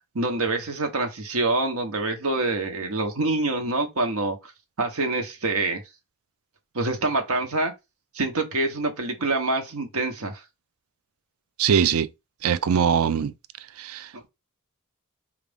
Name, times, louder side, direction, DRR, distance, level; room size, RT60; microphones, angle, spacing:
voice 1, 0.1-4.5 4.8-5.8 6.7-7.7 8.1-10.4 14.1-14.2, right 2 dB, 85° right, 1.0 m, -26 dB
voice 2, 11.6-12.1 12.4-13.3 13.8-14.1, right 7 dB, 70° right, 0.4 m, -22 dB
4.9 x 2.5 x 3.5 m
head